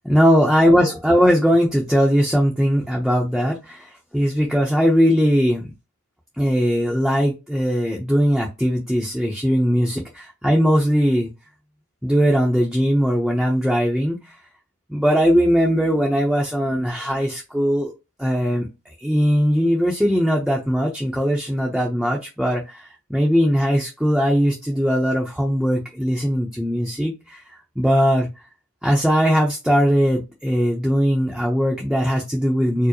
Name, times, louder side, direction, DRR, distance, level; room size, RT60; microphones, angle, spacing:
voice 1, 0.0-5.7 6.4-11.3 12.0-14.2 14.9-17.9 18.2-18.7 19.0-27.4 27.8-28.3 28.8-32.9, equal, ahead, -2 dB, 0.6 m, -19 dB
4.5 x 2.1 x 2.9 m, 0.26 s
head